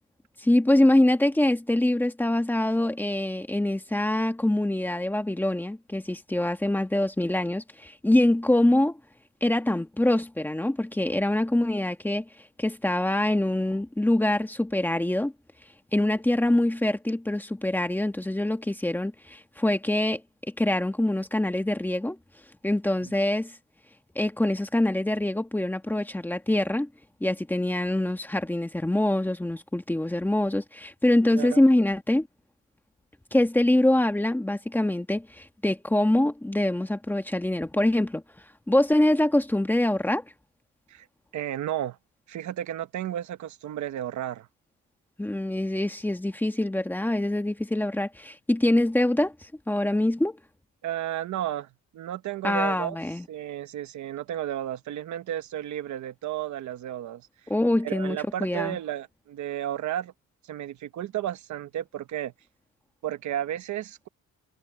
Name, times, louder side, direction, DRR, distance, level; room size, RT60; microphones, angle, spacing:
voice 1, 0.4-8.9 9.4-12.2 12.6-15.3 15.9-20.2 20.6-22.2 22.6-23.5 24.1-26.9 27.2-32.3 33.3-38.2 38.7-40.2 45.2-49.3 49.7-50.4 52.4-53.2 57.5-58.8, left 1 dB, 5° left, 1.4 m, -24 dB
voice 2, 31.3-31.6 40.9-41.1 41.3-42.0 42.3-44.5 50.8-53.0 53.3-57.3 57.8-60.1 60.5-62.3 63.0-64.1, right 12 dB, 75° right, 1.2 m, -33 dB
cardioid pair, 160°, 29 cm